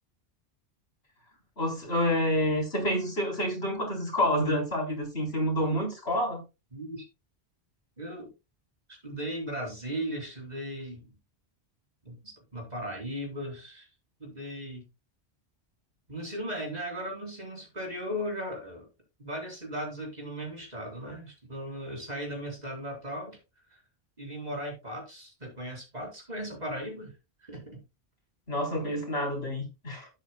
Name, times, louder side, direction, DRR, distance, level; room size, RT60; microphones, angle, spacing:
voice 1, 1.6-6.4 28.5-30.1, left 1 dB, 70° left, 4.3 m, -28 dB
voice 2, 6.7-7.1 8.0-8.3 9.0-11.2 12.0-13.9 14.2-14.9 16.1-18.9 19.2-23.4 24.2-27.1 27.4-27.8, equal, 40° right, 4.7 m, -37 dB
12.0 x 9.8 x 2.3 m
omnidirectional pair, 1.1 m